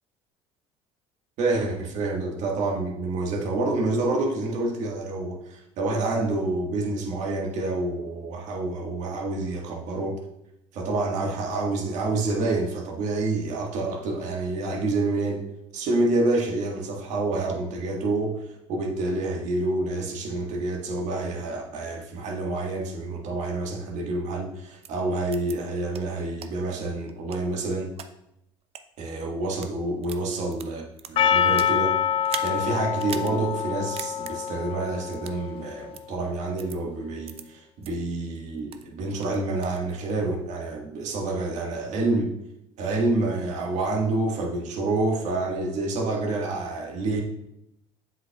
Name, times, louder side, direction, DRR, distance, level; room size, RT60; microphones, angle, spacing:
voice 1, 1.4-10.2 10.7-15.4 15.7-18.4 18.7-27.9 29.0-31.9 32.4-42.3 42.8-47.2, right 2 dB, 65° right, 0 dB, 1.6 m, -28 dB
sound 1, 24.8-24.9 25.3-25.5 25.9-26.0 26.4-26.5 27.1-28.1 28.6-28.8 29.4-29.7 30.0-31.8 32.2-32.5 33.0-33.3 33.6-33.7 34.0-34.3 35.1-35.4 35.9-36.0 36.6-36.8 37.3-37.4 37.8-37.9 38.4-38.9 39.2-39.8, right 8 dB, 50° right, 0.6 m, -39 dB
Percussion, 31.2-35.7, left 8 dB, 45° left, 0.4 m, -26 dB
7.7 x 6.4 x 2.3 m, 0.82 s
supercardioid pair, 80°, 13 cm